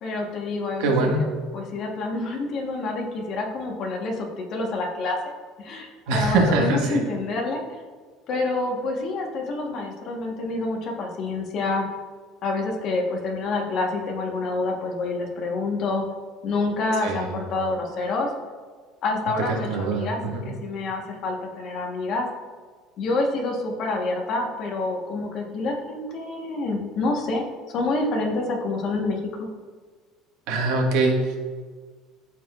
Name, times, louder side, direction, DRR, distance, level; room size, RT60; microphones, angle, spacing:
voice 1, 0.0-1.1 1.5-5.2 5.6-7.8 8.3-11.8 12.4-16.0 16.4-18.3 19.0-22.3 23.0-27.5 27.7-29.5, left 3 dB, 45° left, 2 dB, 1.1 m, -27 dB
voice 2, 0.8-1.3 6.1-7.0 17.0-17.3 19.7-20.4 30.5-31.4, right 3 dB, 70° right, 1 dB, 1.5 m, -23 dB
13.0 x 4.7 x 2.4 m, 1.5 s
cardioid pair, 155°, 0 cm